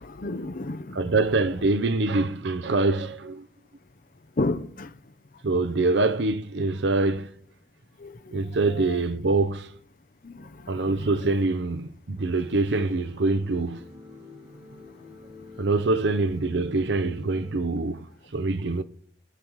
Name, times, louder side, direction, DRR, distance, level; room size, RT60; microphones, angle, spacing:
voice 1, 0.0-1.0 4.4-4.9 8.0-8.1 8.9-9.0 10.2-10.4 10.9-11.0, left 2 dB, 50° left, 0.6 m, -30 dB
voice 2, 0.9-3.5 5.4-7.3 8.3-9.7 10.7-13.8 15.6-18.0 18.3-18.8, right 3 dB, 75° right, 0.7 m, -24 dB
sound 1, 12.2-17.6, left 3 dB, 35° right, 2.5 m, -46 dB
21.0 x 8.9 x 3.1 m
head